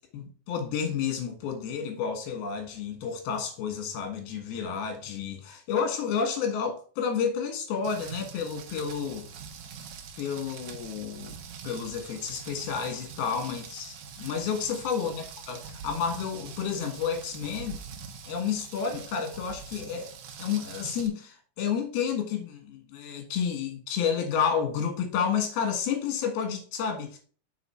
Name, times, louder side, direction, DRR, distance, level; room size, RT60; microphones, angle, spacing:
voice 1, 0.1-9.3 10.2-11.4 11.6-17.8 18.3-20.1 20.4-27.2, left 7 dB, 75° left, 3.5 m, -30 dB
Rain, 7.8-21.1, right 6 dB, 70° right, 2.1 m, -44 dB
8.0 x 5.1 x 4.5 m
omnidirectional pair, 4.6 m